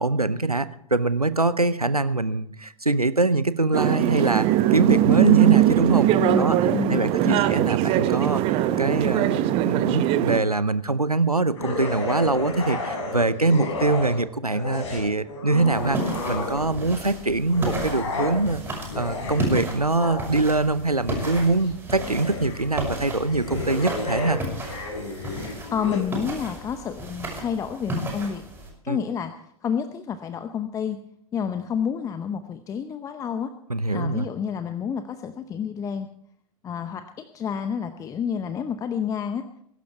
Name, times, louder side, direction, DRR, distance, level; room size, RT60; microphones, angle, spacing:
voice 1, 0.0-6.1 6.4-6.6 6.9-24.4 28.9-29.0 33.7-34.3, right 2 dB, 90° right, 15 dB, 0.8 m, -24 dB
sound 1, 3.7-10.4, right 13 dB, 30° right, 1.0 m, -20 dB
voice 2, 6.2-7.5 25.7-28.4 28.8-31.0 31.3-33.5 33.9-36.1 36.6-39.4, left 7 dB, 20° left, 10 dB, 0.7 m, -29 dB
sound 2, 11.5-14.2 14.5-16.9 17.4-26.0, left 2 dB, 55° left, 5.8 m, -32 dB
sound 3, 15.7-28.7, right 1 dB, 10° right, 5.9 m, -33 dB
21.0 x 11.5 x 4.6 m, 0.71 s
figure-of-eight pair, 100°, 19 cm